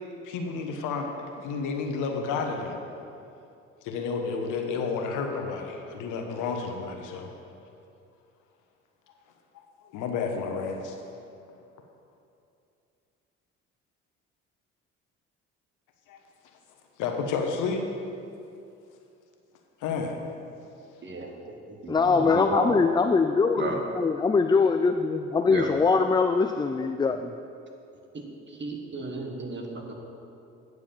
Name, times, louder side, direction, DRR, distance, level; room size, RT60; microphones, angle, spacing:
voice 1, 0.2-2.8 3.8-7.3 9.5-9.6 9.9-10.9 16.1-16.2 17.0-17.8 19.8-20.2, left 5 dB, 75° left, 3 dB, 1.2 m, -31 dB
voice 2, 21.0-22.7 23.6-23.8 25.4-25.7 28.1-29.9, right 2 dB, 35° right, 2 dB, 1.6 m, -34 dB
voice 3, 21.9-27.3, left 4 dB, 15° left, 7 dB, 0.3 m, -23 dB
9.3 x 4.8 x 7.2 m, 2.6 s
supercardioid pair, 65°, 31 cm